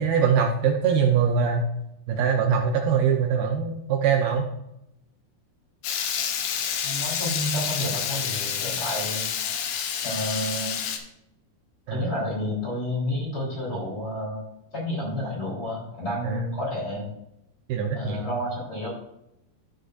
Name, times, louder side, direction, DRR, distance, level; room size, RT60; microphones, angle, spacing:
voice 1, 0.0-1.6 2.1-4.4 11.9-12.0 16.2-16.4 17.7-18.3, right 6 dB, 75° right, 2 dB, 2.5 m, -23 dB
Water tap faucet / Liquid, 5.8-11.0, left 8 dB, 80° left, 2.9 m, -29 dB
voice 2, 6.8-9.2 10.0-10.9 11.9-14.4 14.7-17.1 17.9-18.9, left 1 dB, 25° left, -7 dB, 3.5 m, -30 dB
13.5 x 6.5 x 2.5 m, 0.83 s
omnidirectional pair, 4.8 m